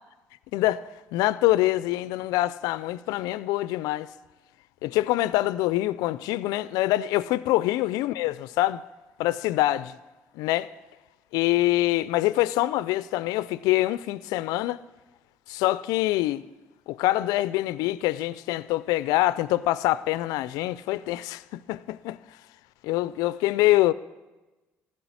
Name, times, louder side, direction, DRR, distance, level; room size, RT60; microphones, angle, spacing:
voice 1, 0.5-0.8 1.1-4.1 4.8-8.8 9.2-10.0 10.4-10.7 11.3-14.8 15.5-16.4 16.9-22.2 22.8-23.9, left 16 dB, 75° left, 0.4 m, -25 dB
15.0 x 6.4 x 9.5 m
hypercardioid pair, 60°, 6 cm